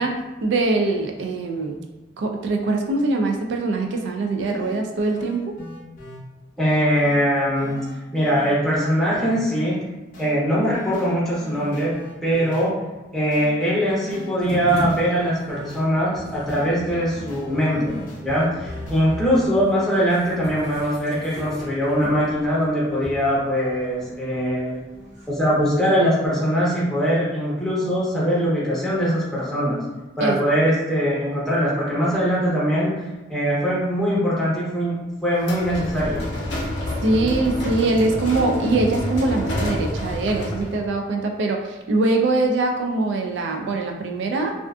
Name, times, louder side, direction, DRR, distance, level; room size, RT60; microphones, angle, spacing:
voice 1, 0.0-1.8 2.2-5.5 30.2-30.4 37.0-44.5, right 2 dB, 75° right, 2 dB, 0.3 m, -23 dB
sound 1, 3.9-4.0 4.4-6.2 7.0-7.2 7.6-9.3 10.1-10.3 10.7-12.7 13.3-13.5 13.9-15.8 16.5-19.5, equal, 45° left, 0.6 m, -38 dB
voice 2, 6.6-7.7 8.1-9.8 10.2-11.9 12.2-12.7 13.1-24.8 25.3-29.8 30.2-33.0 33.3-35.0 35.2-36.2, equal, ahead, -8 dB, 0.6 m, -22 dB
sound 2, 14.4-25.7, equal, 40° right, 1.0 m, -38 dB
sound 3, 35.4-40.8, left 1 dB, 85° left, 0.5 m, -28 dB
2.4 x 2.4 x 2.3 m, 1.1 s
head